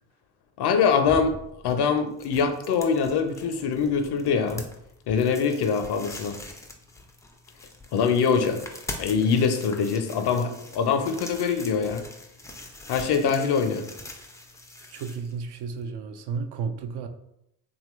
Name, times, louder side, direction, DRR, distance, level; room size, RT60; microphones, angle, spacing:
voice 1, 0.6-1.4 1.6-4.6 5.1-6.4 7.9-8.6 9.0-12.0 12.9-13.9, left 6 dB, 55° left, 7 dB, 0.6 m, -23 dB
sound 1, 0.7-15.9, left 2 dB, 5° left, 0.3 m, -43 dB
voice 2, 14.9-17.1, right 5 dB, 55° right, 8 dB, 0.5 m, -32 dB
2.9 x 2.4 x 3.0 m, 0.80 s
hypercardioid pair, 55°, 50 cm